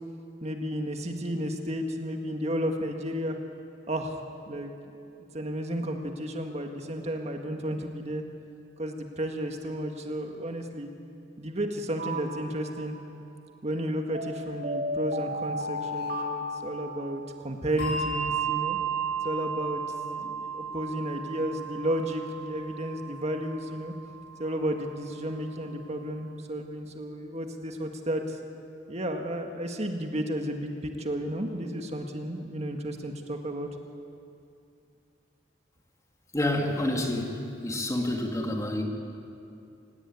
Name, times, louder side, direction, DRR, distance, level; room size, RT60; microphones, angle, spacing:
voice 1, 0.4-3.4 3.9-4.2 4.5-4.7 5.2-8.2 8.8-10.9 11.4-13.0 13.6-18.8 19.2-19.8 20.1-23.9 24.4-28.4 28.9-33.7, right 1 dB, 40° right, 4 dB, 1.8 m, -32 dB
sound 1, 12.0-13.0 14.1-17.4, left 1 dB, 60° right, 2.6 m, -34 dB
Bell, 17.8-24.7, right 5 dB, 60° left, 6.1 m, -34 dB
voice 2, 36.3-38.8, left 1 dB, 20° left, 1 dB, 2.7 m, -28 dB
27.0 x 18.0 x 9.6 m, 2.5 s
head